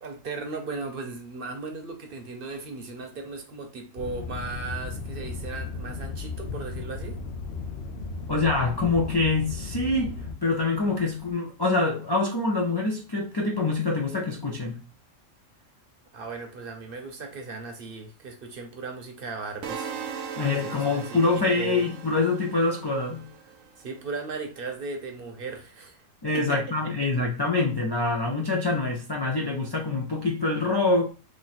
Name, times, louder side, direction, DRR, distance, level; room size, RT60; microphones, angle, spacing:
voice 1, 0.0-7.2 16.1-21.2 21.5-21.8 23.8-26.0 26.3-26.6, right 4 dB, 55° right, 0.8 m, -37 dB
sound 1, 4.0-11.3, left 4 dB, 65° left, 0.8 m, -36 dB
voice 2, 8.3-14.8 20.4-23.3 26.2-31.1, left 3 dB, 45° left, 0.3 m, -25 dB
sound 2, 19.6-23.7, right 7 dB, 85° right, 1.0 m, -38 dB
3.1 x 2.5 x 4.0 m
omnidirectional pair, 1.3 m